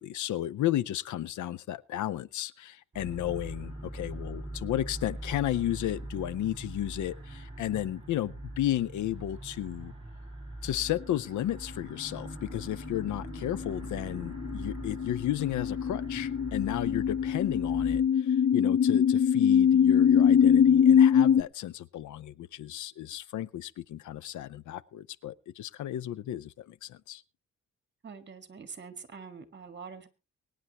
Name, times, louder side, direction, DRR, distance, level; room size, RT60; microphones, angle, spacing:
voice 1, 0.0-9.9 10.6-27.2, left 13 dB, 90° left, 0.6 m, -33 dB
sound 1, 2.9-18.0, right 1 dB, 20° right, 5.2 m, -42 dB
sound 2, 12.8-21.4, left 8 dB, 40° left, 0.6 m, -23 dB
voice 2, 28.0-30.1, right 5 dB, 40° right, 1.7 m, -45 dB
24.0 x 9.6 x 3.0 m
cardioid pair, 110°, 29 cm